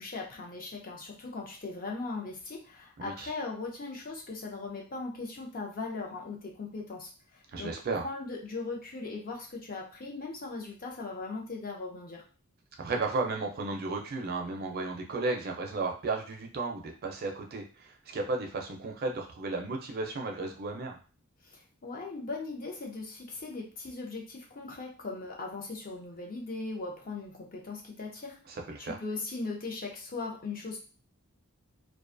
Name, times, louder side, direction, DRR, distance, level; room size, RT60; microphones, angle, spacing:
voice 1, 0.0-7.1 7.5-7.7 8.0-12.2 21.5-28.4 28.8-30.8, left 3 dB, 40° left, 0 dB, 0.6 m, -39 dB
voice 2, 3.0-3.3 7.5-8.0 12.8-21.0 28.5-29.0, right 3 dB, 45° right, 3 dB, 0.4 m, -34 dB
2.4 x 2.3 x 2.5 m, 0.38 s
head